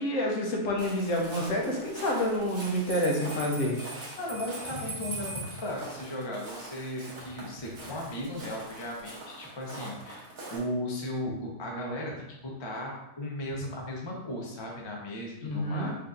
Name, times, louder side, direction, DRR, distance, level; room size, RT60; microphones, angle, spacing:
voice 1, 0.0-3.8 15.4-15.9, equal, 70° left, 0 dB, 1.0 m, -28 dB
Walk footsteps, 0.8-10.6, right 2 dB, 75° right, 1.4 m, -44 dB
Bell, 2.6-5.7, right 3 dB, 5° left, 0.9 m, -41 dB
voice 2, 4.2-15.9, left 1 dB, 35° left, -1 dB, 0.4 m, -36 dB
4.8 x 2.5 x 2.4 m, 0.91 s
omnidirectional pair, 1.5 m